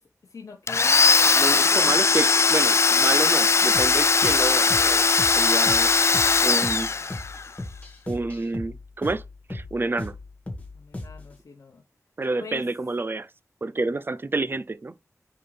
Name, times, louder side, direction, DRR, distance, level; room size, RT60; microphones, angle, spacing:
voice 1, 0.0-2.1 10.7-11.8 12.4-12.7, left 4 dB, 80° left, 1.1 m, -43 dB
Domestic sounds home sounds, 0.7-7.5, left 4 dB, 55° left, 0.3 m, -19 dB
voice 2, 1.3-5.0 5.3-5.9 6.4-6.9 8.1-9.2 9.5-10.1 12.2-13.3 13.6-14.9, right 3 dB, 40° right, 0.6 m, -28 dB
sound 1, 3.7-11.4, left 2 dB, 25° left, 1.9 m, -37 dB
9.4 x 3.7 x 3.3 m
wide cardioid pair, 85°, 6 cm